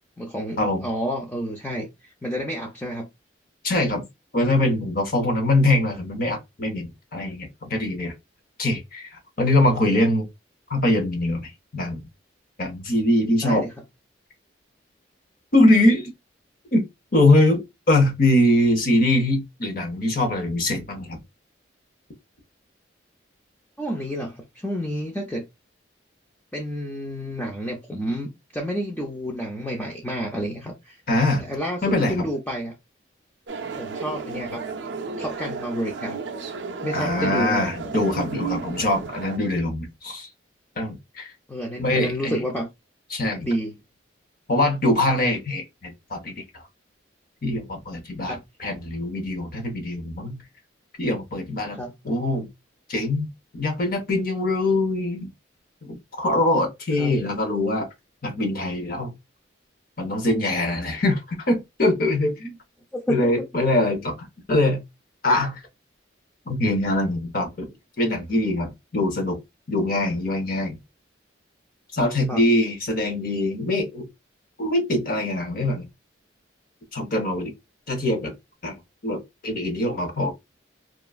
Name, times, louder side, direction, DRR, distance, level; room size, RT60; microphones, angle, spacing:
voice 1, 0.2-3.1 13.4-13.7 23.8-25.4 26.5-31.0 31.4-32.7 33.8-34.6 35.2-36.2 36.8-37.7 41.5-42.7 43.4-43.8 48.3-48.4 51.7-51.9 57.0-57.1 62.9-63.3 72.3-72.4, equal, 10° left, 0.4 m, -30 dB
voice 2, 3.6-4.1 4.3-8.1 8.6-10.3 10.7-12.0 12.6-13.7 15.5-16.1 16.7-16.8 17.1-21.2 31.1-31.4 31.8-32.3 36.9-40.3 40.8-41.3 41.8-42.4 43.1-43.5 44.5-46.6 47.4-50.4 51.0-52.5 52.9-53.3 53.5-55.3 55.8-57.9 58.2-59.1 60.0-62.6 63.1-64.8 65.2-65.6 66.5-67.7 68.0-69.4 69.7-70.8 71.9-74.1 74.6-75.9 76.9-77.5 77.9-78.3 78.6-80.3, left 1 dB, 45° left, 0.7 m, -23 dB
sound 1, 33.5-39.4, right 4 dB, 65° right, 0.4 m, -33 dB
2.9 x 2.4 x 2.3 m
head